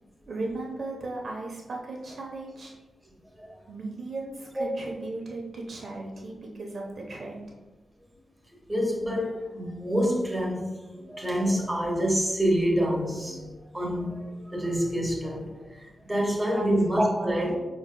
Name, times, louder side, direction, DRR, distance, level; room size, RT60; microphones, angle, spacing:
voice 1, 0.2-2.7 3.7-7.5 16.5-16.7 17.0-17.6, right 2 dB, 65° right, -1 dB, 0.8 m, -36 dB
voice 2, 8.7-17.6, equal, 15° right, -1 dB, 1.1 m, -27 dB
4.4 x 3.1 x 2.2 m, 1.1 s
cardioid pair, 45°, 0 cm